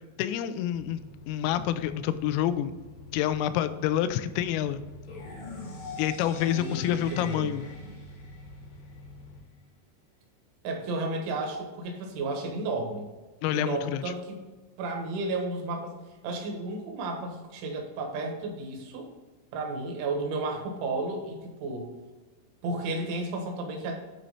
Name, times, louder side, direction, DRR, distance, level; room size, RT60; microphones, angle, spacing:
voice 1, 0.2-1.0 1.3-2.7 3.1-4.8 6.0-7.7 13.4-14.0, left 11 dB, 85° left, 12 dB, 3.2 m, -27 dB
sound 1, 0.7-9.4, left 1 dB, 70° left, 2.8 m, -47 dB
sound 2, 5.0-9.0, left 3 dB, 55° left, 1.7 m, -43 dB
voice 2, 6.4-7.5 10.6-13.1 13.5-14.4 14.8-15.9 16.2-19.1 19.5-21.9 22.6-23.9, right 2 dB, 70° right, 2 dB, 3.6 m, -33 dB
11.5 x 4.3 x 4.1 m, 1.3 s
omnidirectional pair, 5.9 m